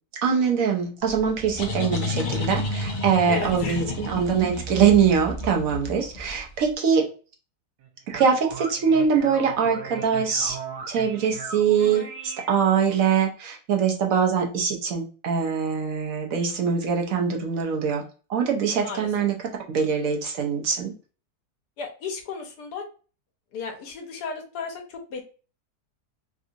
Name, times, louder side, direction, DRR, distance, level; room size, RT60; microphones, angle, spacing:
voice 1, 0.2-7.1 8.1-10.6 10.9-18.0 18.3-19.4 19.7-20.9, right 6 dB, 65° right, 1 dB, 0.9 m, -23 dB
sound 1, 1.1-6.6, left 2 dB, 55° left, 0.5 m, -31 dB
voice 2, 3.3-3.9 11.8-12.1 18.8-19.1 21.8-22.8 23.5-25.2, left 5 dB, 85° left, 2 dB, 1.3 m, -34 dB
sound 2, 7.8-13.1, right 6 dB, 90° right, 1.2 m, -38 dB
3.5 x 2.7 x 2.5 m, 0.36 s
omnidirectional pair, 1.7 m